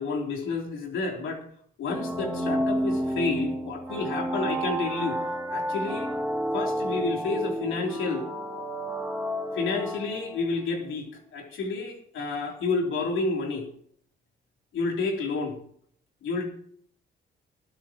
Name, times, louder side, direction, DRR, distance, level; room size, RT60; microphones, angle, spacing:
voice 1, 0.0-1.4 1.8-5.2 5.5-6.1 6.5-8.3 9.5-13.7 14.7-15.6 16.2-16.5, left 3 dB, 80° left, 1 dB, 3.4 m, -30 dB
sound 1, 1.9-10.5, equal, 5° right, 4.2 m, -30 dB
18.0 x 12.5 x 3.0 m, 0.63 s
cardioid pair, 90°, 20 cm